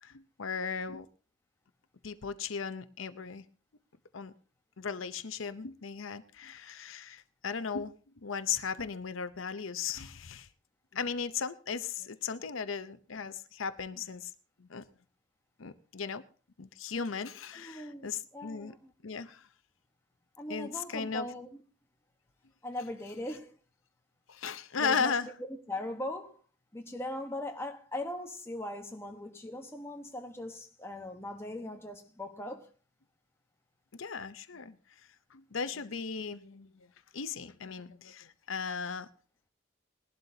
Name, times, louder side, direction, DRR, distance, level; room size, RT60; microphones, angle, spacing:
voice 1, 0.0-1.1 2.0-3.4 4.1-4.3 4.8-7.9 8.2-10.5 10.9-14.3 14.6-14.8 15.6-16.2 16.6-18.7 19.0-19.4 20.5-21.3 24.3-25.3 33.9-34.8 35.3-36.9 37.1-39.1, left 6 dB, 90° left, 0.7 m, -36 dB
voice 2, 17.5-18.9 20.4-21.6 22.6-23.6 24.8-26.4 26.7-32.7, left 1 dB, 10° left, 1.2 m, -40 dB
20.0 x 12.0 x 2.8 m
head